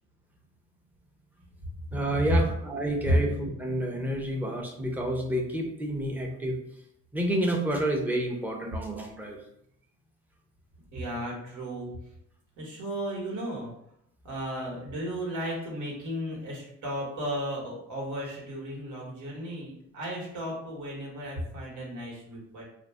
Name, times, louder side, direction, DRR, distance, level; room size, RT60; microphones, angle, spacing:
voice 1, 1.9-6.5 7.1-9.4, right 1 dB, 5° right, 1 dB, 0.5 m, -29 dB
voice 2, 10.9-11.9 12.6-13.7 14.2-22.6, equal, 80° right, -3 dB, 1.1 m, -35 dB
2.4 x 2.0 x 3.2 m, 0.73 s
cardioid pair, 90°, 30 cm